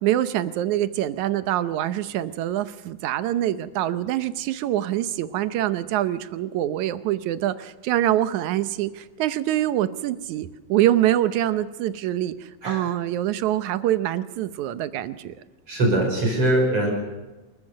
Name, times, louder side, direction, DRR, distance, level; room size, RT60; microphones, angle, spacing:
voice 1, 0.0-15.4, right 13 dB, 75° right, 13 dB, 2.0 m, -25 dB
voice 2, 15.7-16.9, right 1 dB, 45° right, 0 dB, 6.2 m, -21 dB
28.5 x 14.0 x 6.5 m, 1.2 s
omnidirectional pair, 3.8 m